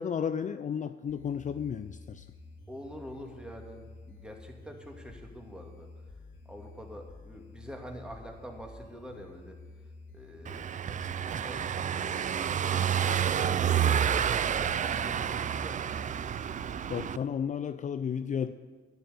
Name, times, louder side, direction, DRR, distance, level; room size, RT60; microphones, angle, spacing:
voice 1, 0.0-2.3 16.9-18.5, left 7 dB, 40° left, 11 dB, 0.5 m, -33 dB
sound 1, 1.1-17.1, left 3 dB, 80° left, 2.6 m, -50 dB
voice 2, 2.7-5.9 6.5-9.6 10.1-10.7 11.3-11.7 12.6-16.2, equal, 5° right, 2 dB, 2.3 m, -46 dB
Car passing by / Engine, 10.5-17.2, right 8 dB, 40° right, 0.4 m, -29 dB
11.5 x 7.7 x 9.3 m, 1.5 s
cardioid pair, 90°, 20 cm